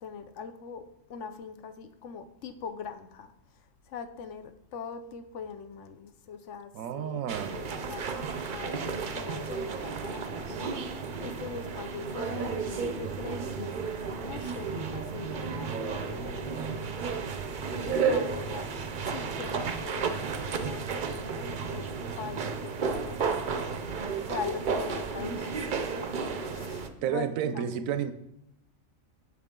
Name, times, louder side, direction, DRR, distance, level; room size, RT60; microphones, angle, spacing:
voice 1, 0.0-3.3 3.9-13.9 14.2-17.2 17.8-18.7 19.1-23.6 24.3-27.6, left 6 dB, 65° left, 9 dB, 0.9 m, -42 dB
voice 2, 6.7-7.6 27.0-28.1, right 8 dB, 85° right, 12 dB, 1.0 m, -31 dB
sound 1, 7.3-26.9, right 5 dB, 50° right, 0.6 m, -33 dB
8.2 x 6.2 x 3.7 m, 0.79 s
omnidirectional pair, 1.4 m